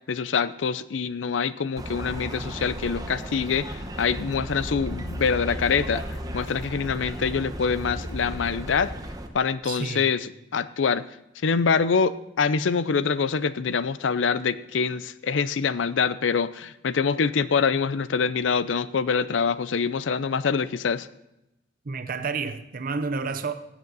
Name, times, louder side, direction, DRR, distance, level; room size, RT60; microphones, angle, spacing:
voice 1, 0.1-6.0 6.3-8.9 9.3-11.0 11.4-21.1, left 5 dB, 80° left, 0.5 m, -25 dB
sound 1, 1.8-9.3, equal, 20° right, 1.0 m, -35 dB
voice 2, 9.6-10.1 21.9-23.5, right 4 dB, 50° right, 0.6 m, -30 dB
15.5 x 8.0 x 4.0 m
head